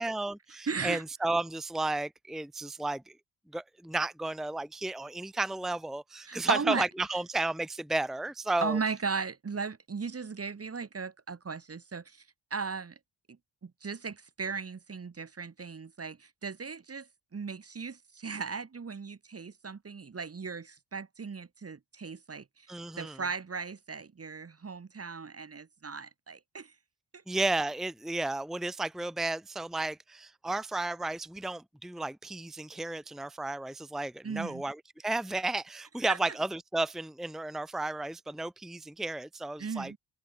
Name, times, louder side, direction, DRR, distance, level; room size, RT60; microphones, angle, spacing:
voice 1, 0.0-3.1 3.5-8.8 22.7-23.2 27.3-39.9, right 2 dB, ahead, 1.0 m, -33 dB
voice 2, 0.7-1.0 6.3-6.8 8.6-12.2 12.5-12.9 13.6-17.1 17.3-22.4 23.0-26.7 34.2-34.6 36.1-36.2 39.6-40.0, right 5 dB, 30° right, 1.3 m, -36 dB
wide cardioid pair, 165°, 49 cm